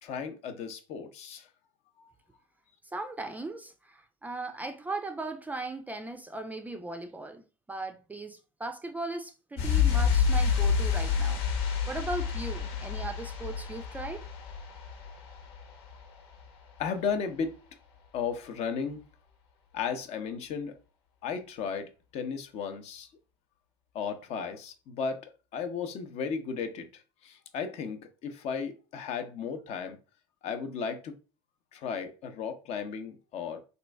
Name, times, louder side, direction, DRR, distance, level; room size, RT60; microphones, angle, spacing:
voice 1, 0.0-1.5 2.0-2.1 16.8-17.6 18.1-19.0 19.7-20.7 21.2-23.1 23.9-30.0 30.4-31.1 31.7-33.6, left 6 dB, 50° left, 0.7 m, -35 dB
voice 2, 2.8-11.4 11.9-14.3, right 2 dB, 10° right, 0.4 m, -38 dB
sound 1, 9.6-16.1 16.3-16.5, left 6 dB, 80° left, 1.2 m, -28 dB
3.0 x 2.6 x 3.3 m
hypercardioid pair, 90°, 14 cm